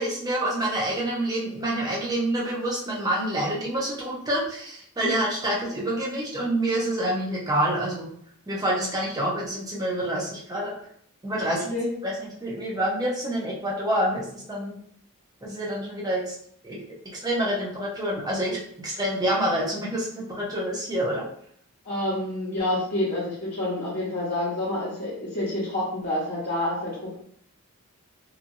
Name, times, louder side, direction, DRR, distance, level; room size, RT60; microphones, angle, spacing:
voice 1, 0.0-8.1 8.5-10.7 11.2-11.7 12.0-14.8 15.4-16.4 16.6-16.8 17.2-21.2, right 1 dB, 15° right, -4 dB, 0.6 m, -27 dB
voice 2, 21.8-27.1, left 1 dB, 45° left, -11 dB, 1.0 m, -28 dB
2.8 x 2.5 x 2.6 m, 0.66 s
head